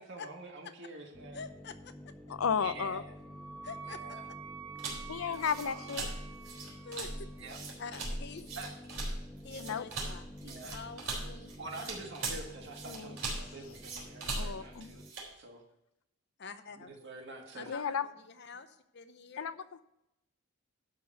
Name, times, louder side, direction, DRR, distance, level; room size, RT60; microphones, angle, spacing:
voice 1, 0.0-1.4 2.6-3.0 4.0-4.2 5.2-6.0 7.4-7.6 8.6-8.7 10.4-10.8 11.6-15.0 15.4-15.6 16.9-17.7, right 2 dB, 55° right, 2 dB, 1.8 m, -46 dB
sound 1, 1.1-15.1, left 1 dB, 5° left, 0.4 m, -50 dB
voice 2, 1.3-1.9 3.6-4.2 6.8-7.3 7.8-8.5 9.4-11.5 16.4-16.9 17.5-19.6, left 4 dB, 55° left, 10 dB, 0.7 m, -47 dB
voice 3, 2.3-3.0 5.1-6.1 9.6-9.8 12.9-13.6 14.4-14.9 17.7-18.1 19.4-19.8, left 6 dB, 80° left, 14 dB, 0.5 m, -34 dB
Wind instrument woodwind instrument, 2.7-7.4, right 6 dB, 20° right, 1.4 m, -48 dB
sound 2, 4.8-15.3, right 2 dB, 85° right, 3.5 m, -40 dB
12.0 x 4.0 x 7.9 m, 0.85 s
head